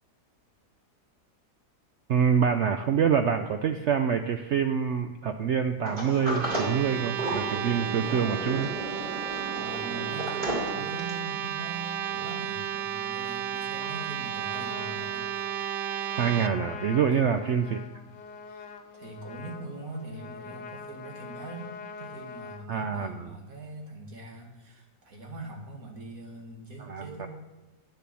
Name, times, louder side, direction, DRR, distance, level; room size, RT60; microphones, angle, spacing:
voice 1, 2.1-8.7 16.2-17.8 22.7-23.3 26.8-27.3, right 7 dB, 70° right, 7 dB, 0.6 m, -26 dB
Sliding door, 5.9-11.3, right 1 dB, 30° right, 3.2 m, -34 dB
sound 1, 6.3-16.5, right 10 dB, 90° right, 1.3 m, -33 dB
voice 2, 9.5-15.3 17.1-17.5 18.5-21.7 22.0-27.3, right 2 dB, 55° right, 0 dB, 2.3 m, -42 dB
Trumpet, 13.8-22.7, left 5 dB, 90° left, 1.5 m, -44 dB
9.4 x 7.0 x 7.5 m, 1.1 s
omnidirectional pair, 1.8 m